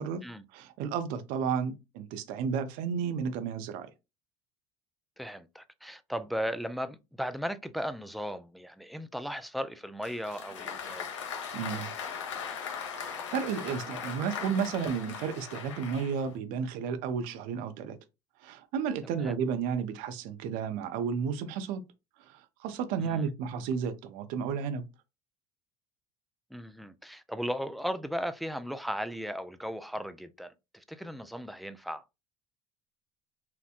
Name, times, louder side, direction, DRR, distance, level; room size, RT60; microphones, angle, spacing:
voice 1, 0.5-3.9 11.5-11.9 13.0-18.0 18.4-21.8 22.3-24.8, right 6 dB, 70° right, 0.5 m, -32 dB
voice 2, 5.2-11.1 19.2-19.3 23.0-23.3 26.5-32.0, equal, ahead, 0.3 m, -36 dB
Applause, 10.0-16.4, left 7 dB, 90° left, 0.6 m, -39 dB
2.8 x 2.1 x 2.4 m
hypercardioid pair, 75°, 15 cm